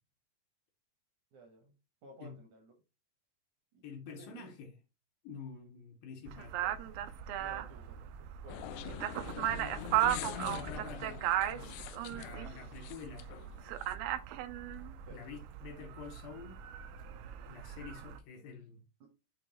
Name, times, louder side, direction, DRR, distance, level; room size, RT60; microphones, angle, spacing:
voice 1, 1.3-1.7 2.0-2.8 3.7-4.6 6.6-6.8 7.4-9.8 10.3-10.9 15.0-15.2 19.0-19.1, right 1 dB, 70° right, 1.8 m, -55 dB
voice 2, 3.8-4.8 5.2-6.6 10.1-11.8 12.1-13.3 15.1-16.6 17.5-18.8, left 5 dB, 75° left, 2.3 m, -48 dB
sound 1, 6.3-18.2, right 12 dB, 85° right, 2.0 m, -37 dB
sound 2, 8.5-13.9, left 11 dB, 90° left, 2.1 m, -45 dB
7.5 x 3.1 x 4.1 m
omnidirectional pair, 4.8 m